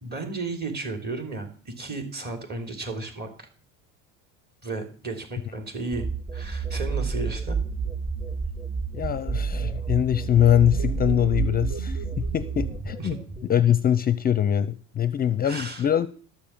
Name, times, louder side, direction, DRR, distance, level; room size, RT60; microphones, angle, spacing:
voice 1, 0.0-3.5 4.6-6.1 6.3-7.6 9.2-9.3 13.0-13.2 15.4-15.9, right 3 dB, 30° right, 5 dB, 3.5 m, -34 dB
sound 1, 5.9-13.5, right 5 dB, 15° right, 4.6 m, -30 dB
voice 2, 8.9-12.0 12.3-13.1 13.5-16.1, left 10 dB, 30° left, 14 dB, 0.5 m, -23 dB
sound 2, 9.3-13.3, right 5 dB, 50° right, 1.1 m, -40 dB
13.0 x 6.9 x 7.3 m, 0.41 s
cardioid pair, 120°, 31 cm